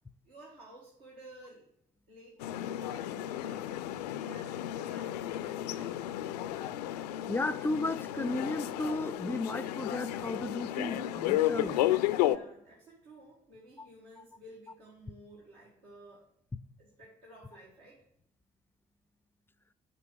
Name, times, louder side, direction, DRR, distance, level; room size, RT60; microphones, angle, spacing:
voice 1, 0.3-1.7 2.1-6.0 11.3-11.4 11.9-16.3 16.8-18.0, right 1 dB, 75° right, 1.6 m, -54 dB
sound 1, 2.4-12.4, left 13 dB, 75° left, 0.4 m, -33 dB
voice 2, 7.3-11.9, left 2 dB, 10° left, 0.4 m, -34 dB
9.0 x 5.5 x 3.7 m
figure-of-eight pair, 50°, 21 cm